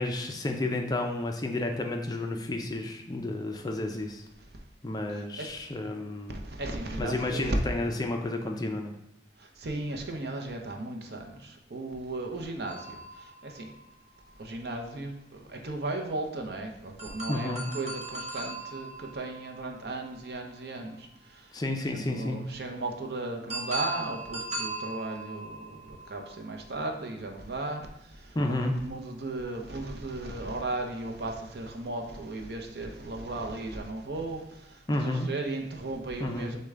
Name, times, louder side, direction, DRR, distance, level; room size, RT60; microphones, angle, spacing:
voice 1, 0.0-4.2 4.8-6.4 7.0-8.9 17.3-17.6 21.5-22.4 28.3-28.7 34.9-35.3 36.2-36.5, left 2 dB, 20° left, 3 dB, 0.4 m, -31 dB
voice 2, 5.1-5.5 6.3-7.6 9.4-13.7 14.4-21.6 21.9-28.4 28.6-36.6, right 2 dB, 60° right, 2 dB, 0.6 m, -36 dB
sound 1, 12.7-14.4 17.0-20.9 23.5-27.0, right 2 dB, 35° right, 0.9 m, -39 dB
6.4 x 2.2 x 3.6 m, 0.83 s
head